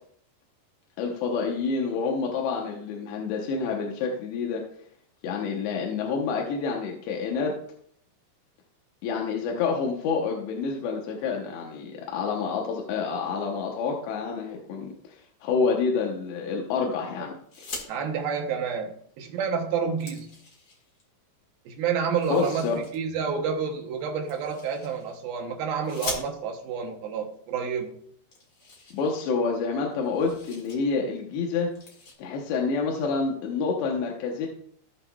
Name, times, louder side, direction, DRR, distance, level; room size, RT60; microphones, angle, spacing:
voice 1, 1.0-4.6 5.2-7.6 9.0-17.7 22.3-22.8 28.9-31.7 32.2-34.5, left 5 dB, 75° left, 0 dB, 3.0 m, -28 dB
sound 1, 17.4-17.9 19.2-19.3 19.6-21.0 22.1-23.0 24.3-25.2 25.8-26.7 27.6-27.7 27.9-28.0 28.3-29.6 29.9-30.8 31.1-31.3 31.7-32.1, left 3 dB, 50° left, 1.3 m, -41 dB
voice 2, 17.9-20.4 21.7-28.0, right 6 dB, 75° right, 3 dB, 2.3 m, -29 dB
17.0 x 5.9 x 2.3 m, 0.64 s
omnidirectional pair, 5.2 m